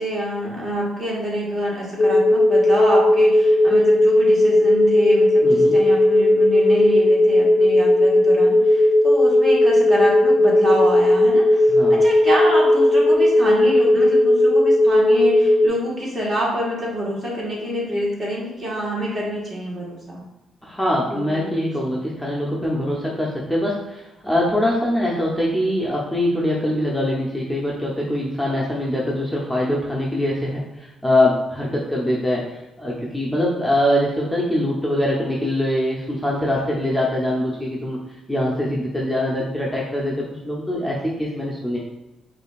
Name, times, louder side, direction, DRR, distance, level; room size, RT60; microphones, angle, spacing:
voice 1, 0.0-20.2 21.1-21.7, equal, 35° right, -4 dB, 1.5 m, -26 dB
sound 1, 2.0-15.7, left 1 dB, 45° left, 0.3 m, -16 dB
voice 2, 5.4-5.8 11.7-12.0 20.6-38.0 38.3-41.8, left 1 dB, ahead, -5 dB, 0.7 m, -23 dB
4.9 x 2.6 x 2.4 m, 1.0 s
cardioid pair, 90°, 0 cm